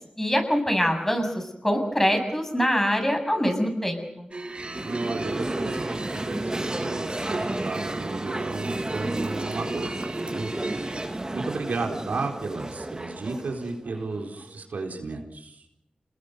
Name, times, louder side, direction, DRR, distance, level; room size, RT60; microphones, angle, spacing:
voice 1, 0.2-4.3, equal, 15° left, 5 dB, 7.5 m, -24 dB
sound 1, 4.3-11.1, right 2 dB, 40° right, 4.0 m, -36 dB
sound 2, 4.6-14.6, right 1 dB, 25° right, 1.7 m, -33 dB
voice 2, 4.7-9.9 10.3-15.6, right 3 dB, 85° right, 1 dB, 4.2 m, -34 dB
28.0 x 20.0 x 6.7 m, 0.82 s
cardioid pair, 55°, 3 cm